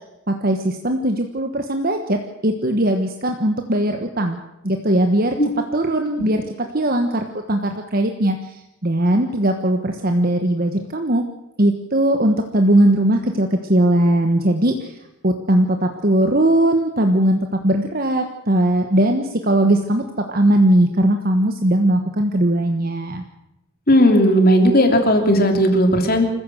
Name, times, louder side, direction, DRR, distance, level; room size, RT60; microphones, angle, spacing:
voice 1, 0.3-4.4 4.6-5.4 5.7-6.4 6.7-11.2 11.6-15.0 15.2-20.0 20.3-23.2, right 1 dB, 40° right, 5 dB, 1.3 m, -19 dB
voice 2, 23.9-26.3, equal, 40° left, 5 dB, 3.2 m, -15 dB
26.5 x 15.0 x 7.8 m, 0.91 s
head